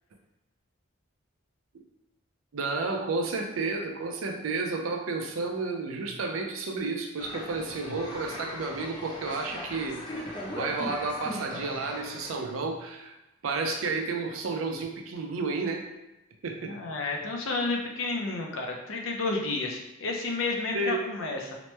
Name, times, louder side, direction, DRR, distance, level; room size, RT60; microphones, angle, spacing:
voice 1, 2.5-13.1 13.4-15.9 16.4-16.8 20.7-21.0, right 3 dB, 85° right, 3 dB, 0.5 m, -31 dB
sound 1, 7.2-12.4, left 1 dB, 20° left, 0.5 m, -39 dB
voice 2, 16.7-21.6, left 3 dB, 75° left, 1 dB, 0.5 m, -31 dB
2.9 x 2.1 x 3.1 m, 0.94 s
head